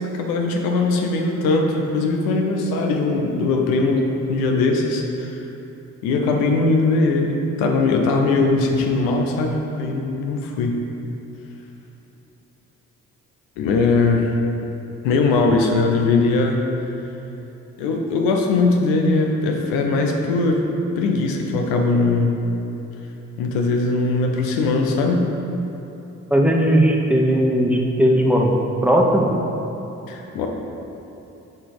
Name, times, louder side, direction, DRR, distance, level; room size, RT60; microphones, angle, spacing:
voice 1, 0.1-5.4 6.0-10.8 13.6-14.3 15.0-16.6 17.8-20.7 21.0-22.4 23.4-25.2 30.1-30.5, left 3 dB, 90° left, 2 dB, 0.6 m, -20 dB
voice 2, 26.3-28.5 28.8-29.3, equal, 5° right, -1 dB, 1.0 m, -17 dB
6.4 x 4.2 x 4.8 m, 2.9 s
hypercardioid pair, 45°, 35 cm